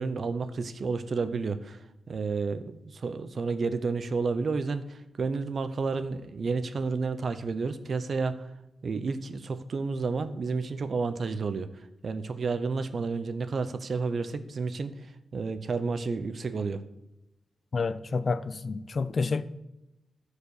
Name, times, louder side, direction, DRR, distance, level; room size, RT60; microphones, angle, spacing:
voice 1, 0.0-1.8 2.1-8.5 8.8-11.7 12.0-14.9 15.3-16.8, right 4 dB, 50° right, 0.7 m, -31 dB
voice 2, 17.7-19.4, left 4 dB, 40° left, 0.5 m, -29 dB
13.5 x 4.9 x 6.6 m
wide cardioid pair, 145°, 0 cm